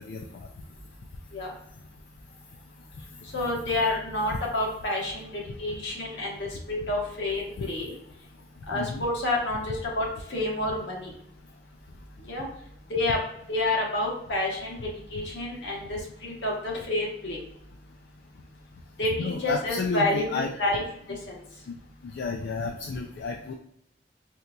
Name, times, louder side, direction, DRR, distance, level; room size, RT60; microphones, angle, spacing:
voice 1, 3.3-5.3 5.6-7.9 8.7-11.1 12.3-12.5 12.9-13.2 13.5-14.8 15.1-17.4 19.0-20.8 21.3-21.4, left 2 dB, 85° left, -2 dB, 1.2 m, -29 dB
voice 2, 8.7-9.0 19.2-20.5 22.1-23.5, left 4 dB, 60° left, 3 dB, 0.3 m, -31 dB
4.2 x 2.2 x 2.5 m, 0.73 s
head